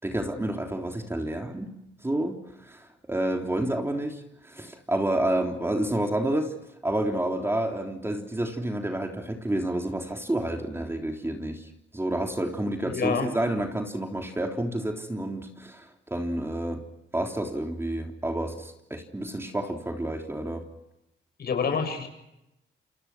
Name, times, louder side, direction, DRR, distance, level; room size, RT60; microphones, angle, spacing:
voice 1, 0.0-1.7 2.0-6.5 6.8-16.8 17.1-20.6, right 1 dB, 10° right, 3 dB, 3.6 m, -29 dB
voice 2, 12.8-13.3 21.4-22.1, left 5 dB, 55° left, 7 dB, 7.3 m, -27 dB
29.0 x 27.0 x 6.2 m, 0.88 s
cardioid pair, 90°, 20 cm